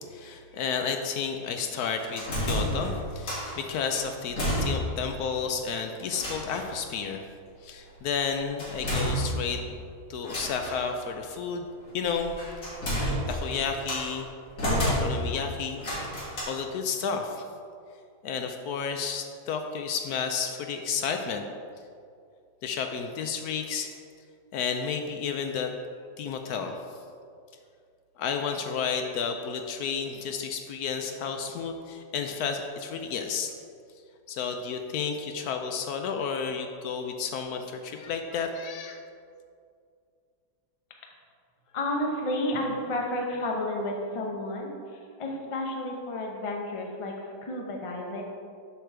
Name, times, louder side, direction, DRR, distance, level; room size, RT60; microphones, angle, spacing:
voice 1, 0.1-7.2 7.6-9.6 10.1-11.7 11.9-12.3 13.3-14.3 14.9-15.8 16.5-17.4 18.2-21.4 22.6-23.9 24.5-25.7 26.2-26.7 28.2-33.5 34.3-39.0, left 6 dB, 70° left, 5 dB, 1.0 m, -31 dB
sound 1, 2.0-3.6 3.9-5.1 5.4-5.5 6.1-6.7 8.6-9.7 10.2-10.8 12.0-14.1 14.6-15.4 15.8-16.4, equal, 50° left, 2.5 m, -30 dB
voice 2, 41.7-47.1 47.4-48.2, left 1 dB, 35° left, 0 dB, 0.5 m, -31 dB
7.6 x 6.4 x 3.4 m, 2.3 s
omnidirectional pair, 1.8 m